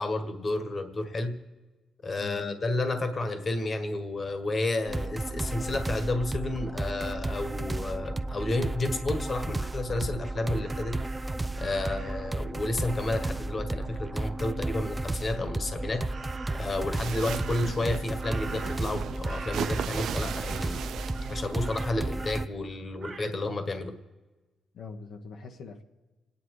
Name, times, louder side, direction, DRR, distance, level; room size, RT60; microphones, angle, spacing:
voice 1, 0.0-1.4 2.0-11.0 11.6-16.0 16.5-20.8 21.3-23.9, left 2 dB, 35° left, 1.6 m, -31 dB
voice 2, 2.1-2.6 24.7-25.8, left 4 dB, 75° left, 1.4 m, -42 dB
sound 1, 4.9-22.5, right 2 dB, 15° right, 0.5 m, -33 dB
Crow, 10.6-12.3 16.1-16.8 17.2-19.0 19.2-20.2 20.5-20.8 21.1-22.4 23.0-23.3, right 4 dB, 45° right, 1.2 m, -45 dB
sound 2, 16.9-21.9, right 9 dB, 80° right, 0.4 m, -38 dB
28.5 x 9.9 x 4.9 m
cardioid pair, 100°, 0 cm